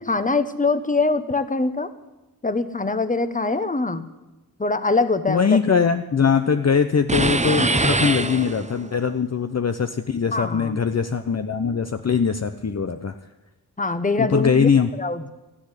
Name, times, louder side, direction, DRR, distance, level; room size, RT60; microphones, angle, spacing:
voice 1, 0.0-1.9 2.4-4.0 4.6-5.5 10.3-10.8 13.8-14.7 15.0-15.3, left 3 dB, 20° left, 12 dB, 1.1 m, -23 dB
voice 2, 5.3-13.1 14.2-14.9, left 6 dB, 40° left, 8 dB, 0.7 m, -21 dB
sound 1, 7.1-8.9, right 2 dB, 20° right, 0.9 m, -22 dB
13.0 x 10.0 x 10.0 m, 1.1 s
cardioid pair, 60°, 38 cm